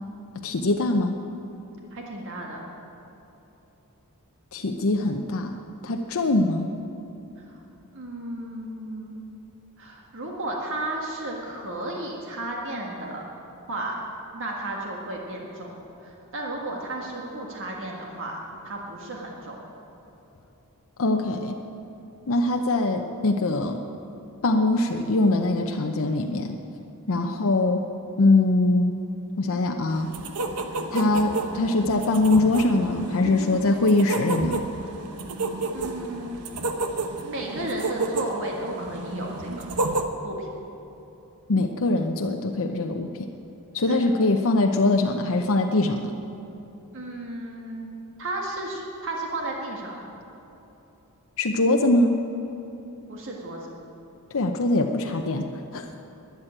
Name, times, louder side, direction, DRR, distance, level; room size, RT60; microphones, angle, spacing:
voice 1, 0.4-1.2 4.5-5.6 5.8-6.7 21.0-21.6 22.3-23.8 24.4-26.6 27.1-27.8 28.2-28.9 29.4-30.1 30.9-34.6 41.5-43.3 43.7-46.1 51.4-52.2 54.3-55.5 55.7-55.9, left 2 dB, 65° left, 4 dB, 0.7 m, -22 dB
voice 2, 1.9-2.7 7.9-9.2 9.8-13.2 13.7-14.0 14.3-19.6 27.2-27.4 35.7-36.3 37.2-39.7 40.2-40.5 43.9-44.0 46.9-47.9 48.2-50.0 53.1-53.7, right 1 dB, 60° right, -1 dB, 1.7 m, -33 dB
sound 1, 29.9-40.0, right 2 dB, 90° right, 1.1 m, -31 dB
12.5 x 10.5 x 8.8 m, 3.0 s
head